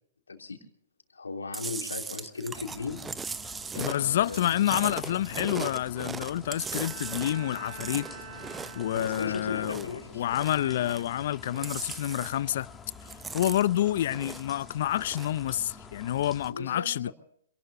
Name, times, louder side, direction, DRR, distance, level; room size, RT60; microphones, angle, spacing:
voice 1, 0.3-0.6 1.1-3.0 3.7-4.6 8.9-10.2 10.5-11.0 16.5-17.1, left 4 dB, 85° left, 3.2 m, -37 dB
Chewing mastication, 1.5-10.0 10.3-11.2 11.5-12.6 12.9-14.6 14.9-15.4, right 5 dB, 10° right, 0.7 m, -39 dB
sound 1, 2.5-16.5, left 4 dB, 15° left, 2.3 m, -48 dB
voice 2, 3.8-8.1 8.8-12.7 13.3-17.1, left 12 dB, 55° left, 0.6 m, -28 dB
Bowed string instrument, 6.5-9.7, right 5 dB, 40° right, 4.9 m, -45 dB
27.0 x 19.0 x 2.7 m
hypercardioid pair, 120°, 0 cm